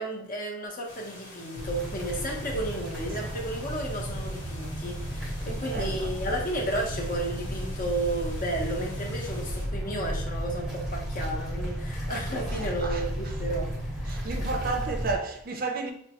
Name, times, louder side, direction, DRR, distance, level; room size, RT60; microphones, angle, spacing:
voice 1, 0.0-13.7, right 1 dB, 45° left, 0.8 m, -33 dB
sound 1, 0.9-9.7, left 1 dB, 80° left, 1.2 m, -47 dB
sound 2, 1.5-15.1, equal, ahead, 0.8 m, -33 dB
voice 2, 5.4-6.1 12.3-13.3 14.1-15.9, right 3 dB, 50° right, 0.5 m, -33 dB
5.0 x 2.2 x 2.9 m
head